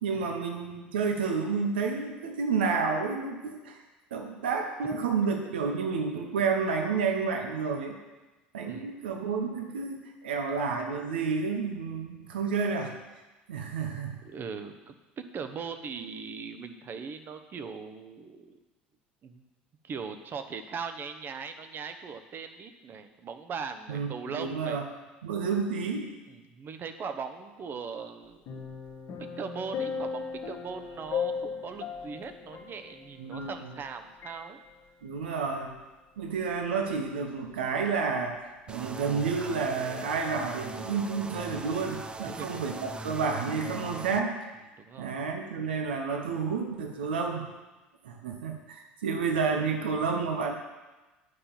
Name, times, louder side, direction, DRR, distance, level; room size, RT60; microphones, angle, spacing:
voice 1, 0.0-3.8 4.1-8.0 8.5-12.9 13.5-14.1 23.9-24.8 25.2-26.1 33.2-33.7 35.0-35.7 36.2-44.3 45.0-47.5 48.0-50.6, right 5 dB, 80° right, 3 dB, 1.2 m, -30 dB
voice 2, 14.2-18.6 19.2-19.4 19.8-24.8 26.3-28.4 29.2-34.6 42.2-42.6 44.8-45.2, right 5 dB, 40° right, 8 dB, 1.1 m, -40 dB
sound 1, 28.5-33.9 34.2-34.4, left 6 dB, 55° left, 1.9 m, -37 dB
sound 2, 38.7-44.2, right 3 dB, 20° right, 0.7 m, -40 dB
9.5 x 5.6 x 7.3 m, 1.2 s
hypercardioid pair, 70°, 5 cm